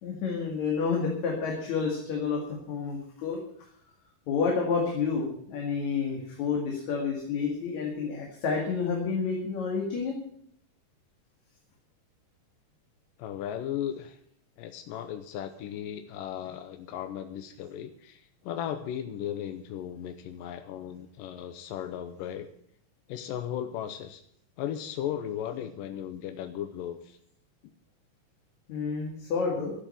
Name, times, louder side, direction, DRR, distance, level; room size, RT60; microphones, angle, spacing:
voice 1, 0.0-3.4 4.3-10.2 28.7-29.7, left 5 dB, 60° left, 0 dB, 3.2 m, -29 dB
voice 2, 13.2-14.2 14.6-22.5 23.1-24.2 24.6-27.2, left 10 dB, 90° left, 8 dB, 2.4 m, -36 dB
13.0 x 8.8 x 8.4 m, 0.67 s
omnidirectional pair, 3.8 m